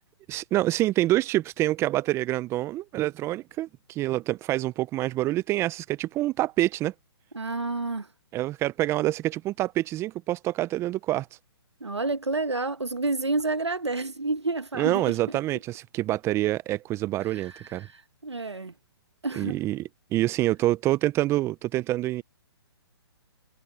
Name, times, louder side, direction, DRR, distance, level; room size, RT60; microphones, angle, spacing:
voice 1, 0.3-6.9 8.3-11.3 14.8-17.9 19.3-22.2, right 15 dB, 20° right, 0.8 m, -26 dB
voice 2, 7.3-8.1 11.8-15.0 17.8-17.9 18.2-18.7 19.2-19.6, right 3 dB, 90° right, 2.0 m, -29 dB
figure-of-eight pair, 130°, 14 cm